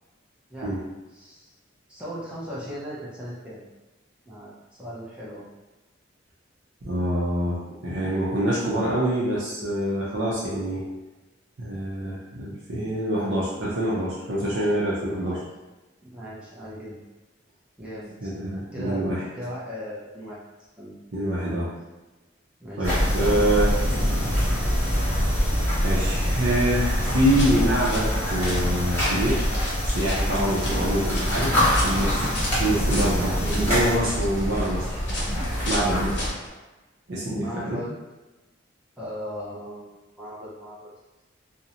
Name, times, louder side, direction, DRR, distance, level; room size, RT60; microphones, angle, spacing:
voice 1, 0.5-0.8 1.1-1.5 1.9-3.7 4.3-5.5 15.2-15.4 16.0-17.0 17.8-18.3 18.7-19.0 19.3-20.4 20.8-21.0 22.6-23.9 37.2-37.9 39.0-40.9, equal, 5° right, -8 dB, 0.6 m, -37 dB
voice 2, 6.9-7.6 7.8-10.8 11.6-15.4 18.2-19.2 21.1-21.7 22.8-23.7 25.8-29.4 29.8-31.5 31.8-32.3 32.6-34.9 35.7-36.1 37.1-37.8, right 1 dB, 75° right, -8 dB, 0.6 m, -25 dB
sound 1, 22.8-36.3, equal, 10° left, 1.1 m, -24 dB
sound 2, 27.2-36.5, left 1 dB, 65° left, 0.7 m, -35 dB
2.6 x 2.1 x 2.7 m, 1.1 s
head